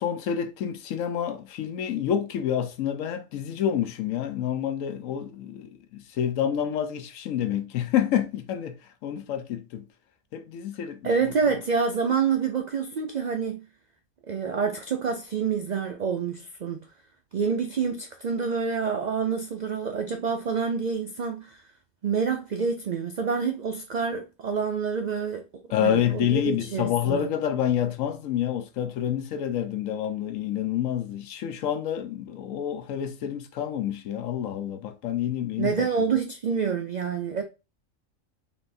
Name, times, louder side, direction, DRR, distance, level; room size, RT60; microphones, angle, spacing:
voice 1, 0.0-9.8 10.3-11.3 25.7-35.9, left 10 dB, 80° left, 1.0 m, -28 dB
voice 2, 11.0-13.6 14.3-16.8 17.3-21.6 22.0-25.4 25.8-27.3 35.6-37.4, right 6 dB, 85° right, 0.3 m, -27 dB
4.1 x 3.5 x 2.5 m
omnidirectional pair, 1.4 m